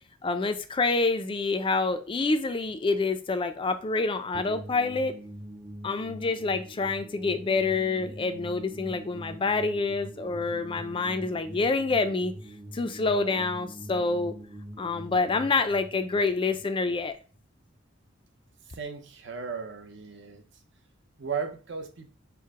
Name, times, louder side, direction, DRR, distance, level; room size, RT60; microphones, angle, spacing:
voice 1, 0.2-5.1 5.8-12.3 12.7-14.3 14.8-17.1, left 3 dB, 25° left, 9 dB, 0.4 m, -27 dB
sound 1, 4.3-17.5, right 1 dB, 20° right, 0.7 m, -44 dB
voice 2, 18.6-20.4 21.2-22.1, right 5 dB, 65° right, 5 dB, 0.7 m, -36 dB
4.6 x 2.1 x 4.7 m, 0.39 s
head